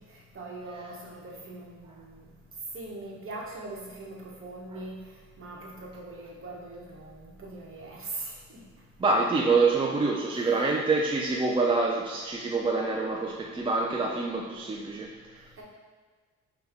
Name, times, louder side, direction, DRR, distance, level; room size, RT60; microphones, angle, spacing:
voice 1, 0.3-2.2 2.7-5.0 5.4-8.6 10.3-10.4 15.6-15.7, right 2 dB, 45° right, -2 dB, 1.0 m, -41 dB
voice 2, 9.0-15.5, right 3 dB, 20° right, -1 dB, 0.3 m, -26 dB
5.4 x 2.2 x 3.5 m, 1.5 s
cardioid pair, 90°, 30 cm